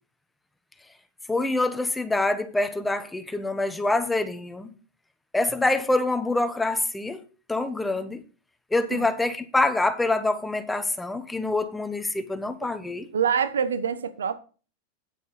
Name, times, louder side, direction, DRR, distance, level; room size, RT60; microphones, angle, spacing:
voice 1, 1.3-4.7 5.3-7.2 7.5-8.2 8.7-13.1, left 2 dB, 10° left, 1.1 m, -25 dB
voice 2, 13.1-14.4, right 7 dB, 90° right, 0.9 m, -25 dB
9.3 x 8.4 x 4.2 m
hypercardioid pair, 115°, 0 cm